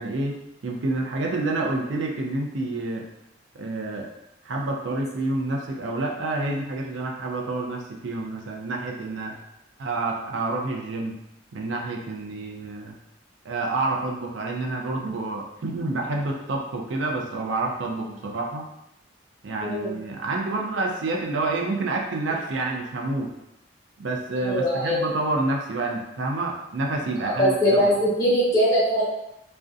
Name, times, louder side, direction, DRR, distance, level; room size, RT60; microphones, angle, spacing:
voice 1, 0.0-3.1 3.5-4.1 4.5-9.4 9.8-11.2 11.5-13.0 13.4-18.7 19.4-23.3 24.0-28.0, right 2 dB, 85° right, 0 dB, 0.4 m, -28 dB
voice 2, 19.6-19.9 24.4-25.0 27.4-29.0, equal, 20° left, -9 dB, 1.0 m, -21 dB
2.5 x 2.1 x 2.4 m, 0.85 s
head